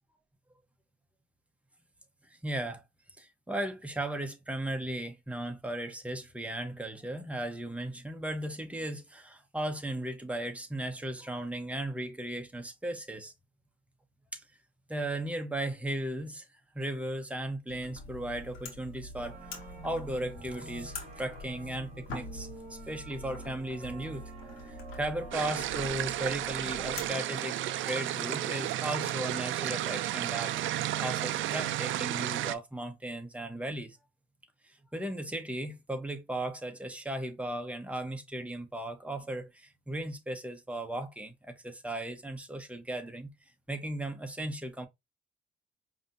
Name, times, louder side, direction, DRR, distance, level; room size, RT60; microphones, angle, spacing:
voice 1, 2.2-2.8 3.2-13.3 14.3-14.4 14.9-30.6 31.0-34.0 34.6-43.3 43.7-44.9, right 1 dB, 5° right, 1.0 m, -36 dB
sound 1, 17.7-27.1, left 2 dB, 85° left, 1.2 m, -45 dB
sound 2, 19.1-32.0, right 4 dB, 35° right, 1.2 m, -48 dB
sound 3, 25.3-32.5, right 13 dB, 75° right, 0.4 m, -33 dB
5.0 x 2.9 x 2.6 m
cardioid pair, 90°, 20 cm